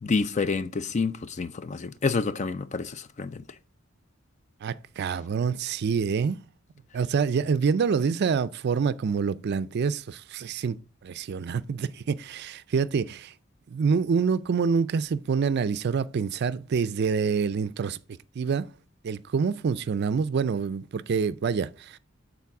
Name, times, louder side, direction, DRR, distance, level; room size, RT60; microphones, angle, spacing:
voice 1, 0.0-3.4, left 4 dB, 35° left, 0.4 m, -28 dB
voice 2, 4.6-6.4 6.9-10.8 11.0-13.3 13.7-18.0 18.4-18.7 19.0-22.0, right 5 dB, 55° right, 0.4 m, -26 dB
8.3 x 4.0 x 4.7 m
head